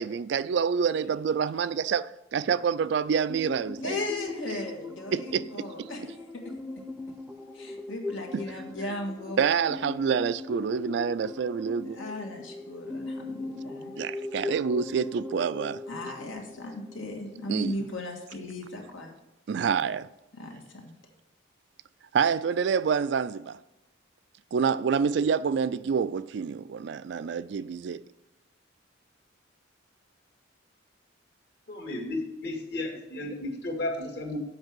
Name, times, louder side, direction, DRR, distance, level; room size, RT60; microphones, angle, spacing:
voice 1, 0.0-4.0 5.1-5.9 8.3-8.4 9.4-12.0 14.0-15.8 17.5-17.7 19.5-20.1 22.1-23.6 24.5-28.0, right 6 dB, 60° right, 0.3 m, -27 dB
sound 1, 3.3-17.7, left 3 dB, 5° right, 0.6 m, -40 dB
voice 2, 3.8-6.4 7.5-9.4 11.9-13.9 15.9-19.2 20.3-21.0, left 2 dB, 85° left, 1.9 m, -37 dB
voice 3, 31.7-34.4, left 2 dB, 55° left, 1.9 m, -33 dB
7.9 x 5.4 x 7.5 m
head